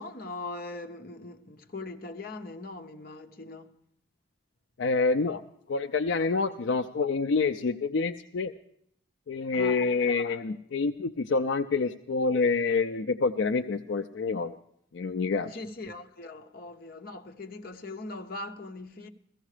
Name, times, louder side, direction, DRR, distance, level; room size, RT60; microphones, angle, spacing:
voice 1, 0.0-3.7 6.4-6.6 9.5-9.8 15.5-19.1, left 2 dB, 50° left, 0.9 m, -41 dB
voice 2, 4.8-5.4 5.7-8.5 9.3-14.6 14.9-15.5, left 4 dB, 75° left, 0.5 m, -27 dB
15.0 x 15.0 x 4.9 m
head